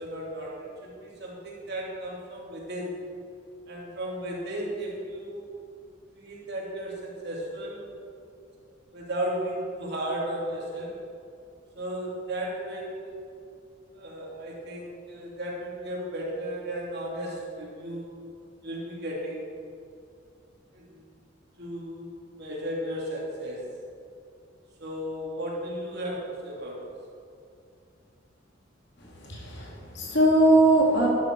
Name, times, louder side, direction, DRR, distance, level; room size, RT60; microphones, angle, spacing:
voice 1, 0.0-3.0 3.7-5.5 6.2-7.8 8.6-11.0 11.7-13.1 13.9-18.2 18.6-19.5 20.7-21.0 21.6-23.7 24.8-26.9, right 1 dB, 60° right, -3 dB, 2.9 m, -35 dB
voice 2, 29.0-31.1, right 1 dB, 65° left, -2 dB, 2.7 m, -21 dB
13.0 x 10.5 x 4.7 m, 2.4 s
head